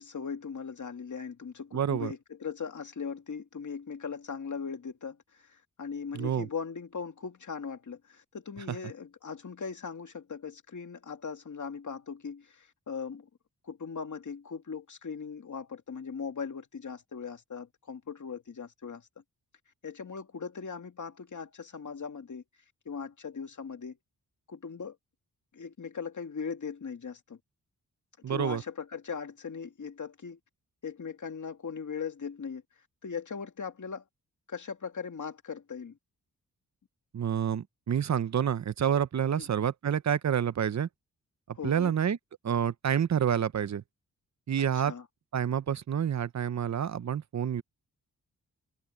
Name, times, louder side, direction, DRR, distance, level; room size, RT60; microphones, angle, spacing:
voice 1, 0.0-13.3 13.6-19.1 19.8-22.4 22.9-24.0 24.5-25.0 25.5-27.4 28.3-30.4 30.8-32.6 33.0-34.0 34.5-36.0 39.4-39.5 41.5-41.9 44.7-45.1, left 6 dB, 50° left, 2.2 m, -39 dB
voice 2, 1.7-2.1 6.1-6.5 8.7-8.8 28.2-28.6 37.1-40.9 41.6-42.2 42.4-43.8 44.5-44.9 45.3-47.6, right 8 dB, 45° right, 0.7 m, -28 dB
wide cardioid pair, 120°, 37 cm